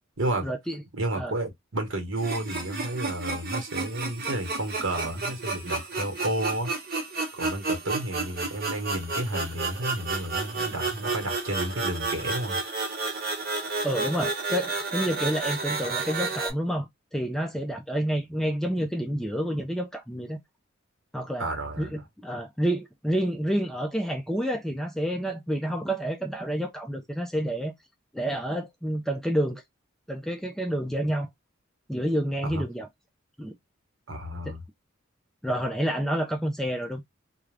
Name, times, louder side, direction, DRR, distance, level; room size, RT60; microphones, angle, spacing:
voice 1, 0.4-0.8 1.2-1.3 13.8-20.4 21.1-21.5 21.8-27.7 28.1-29.6 30.1-31.3 31.9-32.9 33.4-33.5 35.4-37.0, equal, ahead, 0.4 m, -29 dB
voice 2, 0.9-6.7 7.3-12.6 21.4-21.9 32.4-32.6 34.1-34.6, right 1 dB, 70° right, 1.1 m, -31 dB
sound 1, 2.2-16.5, right 3 dB, 45° right, 1.0 m, -31 dB
2.4 x 2.3 x 3.3 m
head